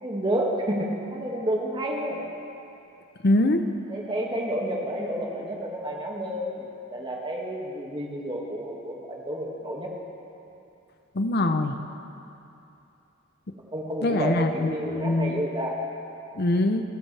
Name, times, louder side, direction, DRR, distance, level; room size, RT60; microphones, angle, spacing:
voice 1, 0.0-2.2 3.9-9.9 13.7-15.8, right 1 dB, 25° right, -2 dB, 2.1 m, -30 dB
voice 2, 3.2-3.6 11.1-11.8 14.0-15.4 16.3-16.8, left 2 dB, 55° left, 7 dB, 0.7 m, -23 dB
28.0 x 13.0 x 3.4 m, 2.8 s
head